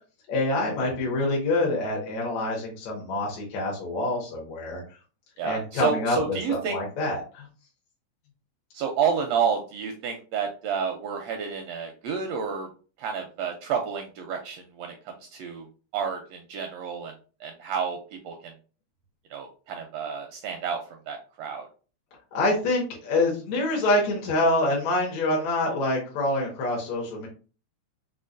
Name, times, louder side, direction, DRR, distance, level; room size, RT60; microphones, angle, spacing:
voice 1, 0.3-4.8 5.4-7.5 22.3-27.3, left 2 dB, 70° left, -2 dB, 2.1 m, -26 dB
voice 2, 5.4-6.8 8.7-12.7 13.0-15.7 15.9-17.1 17.4-18.0 18.2-18.5 19.3-21.7, right 6 dB, 80° right, 3 dB, 1.5 m, -30 dB
5.1 x 2.2 x 2.5 m, 0.36 s
omnidirectional pair, 3.3 m